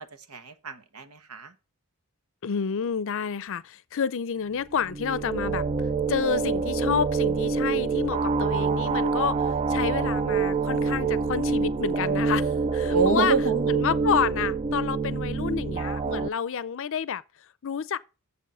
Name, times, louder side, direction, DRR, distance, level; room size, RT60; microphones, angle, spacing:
voice 1, 0.0-1.5 12.9-13.8, right 4 dB, 75° right, 1.1 m, -28 dB
voice 2, 2.4-18.0, left 7 dB, 60° left, 0.5 m, -29 dB
sound 1, 4.7-16.3, right 4 dB, 30° right, 0.3 m, -26 dB
7.2 x 6.3 x 5.5 m
head